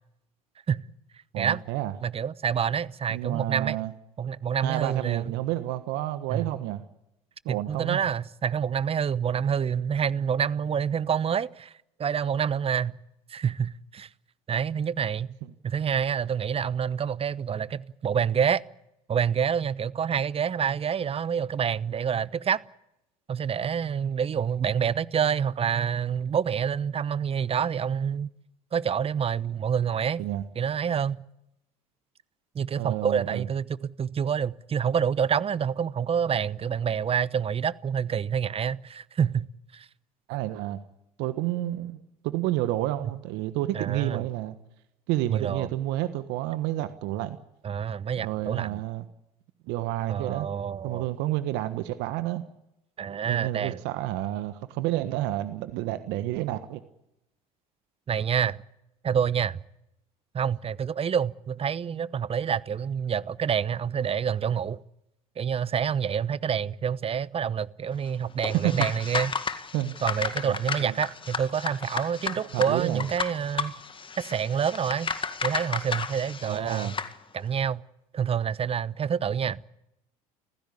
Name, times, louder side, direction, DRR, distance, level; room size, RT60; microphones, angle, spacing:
voice 1, 1.3-1.9 3.1-3.9 4.6-6.8 7.4-8.0 30.2-30.4 32.8-33.5 40.3-40.8 41.2-42.0 42.2-44.6 45.1-47.4 48.2-49.1 49.7-50.5 50.8-52.4 53.3-56.8 68.5-68.9 69.7-70.0 70.4-70.9 72.4-73.0 76.4-77.0, right 15 dB, 65° right, 1.4 m, -30 dB
voice 2, 2.0-3.8 4.2-5.3 6.3-6.5 7.5-11.7 12.0-13.0 13.3-14.1 14.5-15.3 15.6-18.6 19.1-22.6 23.3-28.3 28.7-30.3 30.6-31.2 32.5-39.5 39.7-39.9 43.7-44.2 45.3-45.7 47.6-48.8 50.1-51.1 53.0-53.8 58.1-58.6 59.0-59.6 60.3-64.8 65.4-69.3 70.0-73.7 74.2-75.1 75.4-76.9 77.3-77.8 78.1-79.6, right 7 dB, 30° right, 0.9 m, -27 dB
sound 1, 68.4-77.1, left 5 dB, 25° left, 2.0 m, -33 dB
29.0 x 15.5 x 8.6 m
hypercardioid pair, 70°, 19 cm